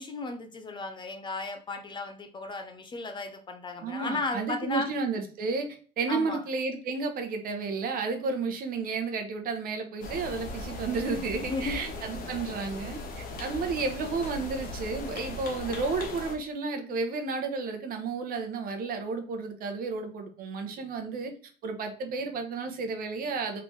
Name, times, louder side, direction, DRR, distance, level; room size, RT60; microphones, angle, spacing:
voice 1, 0.0-4.9 6.1-6.4 11.4-12.0 13.4-13.7, left 3 dB, 25° left, 6 dB, 0.6 m, -35 dB
voice 2, 3.8-21.3 21.6-23.6, right 4 dB, 55° right, 6 dB, 0.9 m, -32 dB
sound 1, 10.0-16.4, left 2 dB, 50° left, 1.0 m, -38 dB
3.9 x 3.4 x 3.2 m, 0.41 s
cardioid pair, 140°, 18 cm